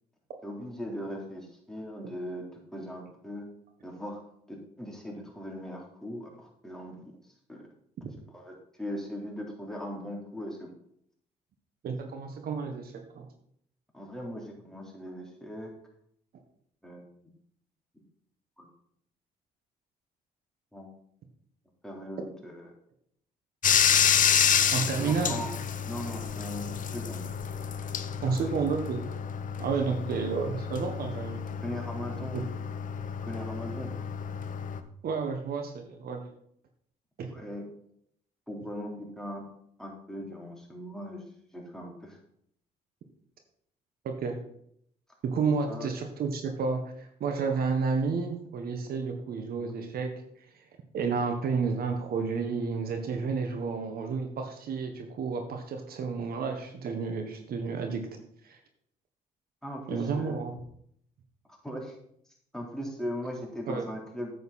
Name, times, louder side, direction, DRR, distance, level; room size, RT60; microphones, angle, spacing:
voice 1, 0.4-2.5 2.7-3.5 3.8-4.2 4.5-7.0 7.5-7.6 8.3-10.7 13.9-15.7 16.8-17.1 18.6-18.7 20.7-20.9 21.8-22.7 25.0-25.5 25.8-27.2 28.2-28.6 30.1-30.2 31.6-32.5 33.2-33.9 37.3-37.6 38.5-39.4 39.8-41.2 41.5-42.2 45.7-45.9 59.6-60.4 61.5-61.9 62.5-64.3, equal, 5° left, -1 dB, 3.8 m, -39 dB
voice 2, 11.8-13.3 24.7-25.4 28.2-29.1 29.6-31.4 32.3-32.4 35.0-36.2 37.2-37.4 44.0-44.4 45.2-50.1 50.5-50.6 50.9-58.1 58.4-58.6 59.9-60.6 63.7-63.9, right 5 dB, 70° right, 5 dB, 1.5 m, -31 dB
Bathtub (filling or washing), 23.6-34.8, left 8 dB, 55° left, 0.9 m, -29 dB
9.4 x 8.1 x 4.3 m, 0.68 s
supercardioid pair, 70°, 16 cm